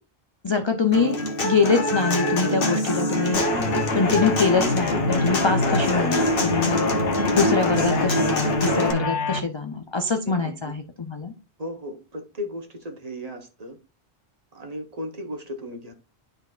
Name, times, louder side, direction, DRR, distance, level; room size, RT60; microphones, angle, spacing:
voice 1, 0.4-1.2 1.4-3.4 3.9-6.9 7.3-11.3, left 4 dB, 40° left, 0.4 m, -24 dB
Human voice / Acoustic guitar, 0.9-8.9, equal, 55° left, 1.2 m, -25 dB
sound 1, 3.3-9.4, left 2 dB, 85° left, 1.3 m, -26 dB
voice 2, 10.2-10.8 11.6-13.8 14.5-15.9, equal, 35° right, 1.0 m, -36 dB
12.0 x 4.0 x 2.4 m
omnidirectional pair, 1.1 m